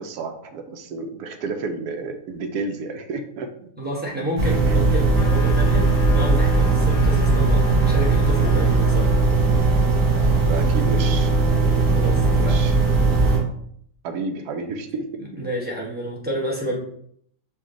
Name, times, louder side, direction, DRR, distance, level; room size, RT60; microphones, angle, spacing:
voice 1, 0.0-3.5 4.4-4.7 10.5-11.3 12.4-12.7 14.0-15.2, right 3 dB, 80° right, 5 dB, 1.1 m, -31 dB
voice 2, 3.8-9.1 11.9-12.7 15.3-16.8, equal, 10° right, -3 dB, 0.6 m, -30 dB
sound 1, 4.4-13.4, right 3 dB, 45° right, 2.4 m, -18 dB
sound 2, 5.1-9.0, left 6 dB, 60° left, 0.9 m, -39 dB
5.9 x 2.2 x 3.7 m, 0.66 s
omnidirectional pair, 1.7 m